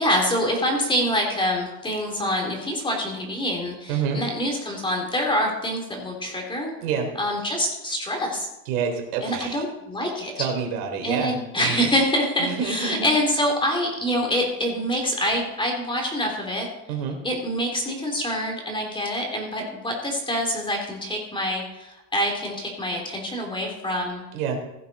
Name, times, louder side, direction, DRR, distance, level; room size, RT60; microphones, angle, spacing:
voice 1, 0.0-6.7 7.2-8.5 9.2-10.5 11.0-16.7 17.2-24.2, equal, 10° left, 1 dB, 3.0 m, -25 dB
voice 2, 3.9-4.2 6.8-7.1 8.7-9.6 10.4-11.9 12.4-13.1 16.9-17.2 24.3-24.6, right 6 dB, 75° right, 3 dB, 3.5 m, -28 dB
16.5 x 8.4 x 4.1 m, 0.92 s
supercardioid pair, 130°, 46 cm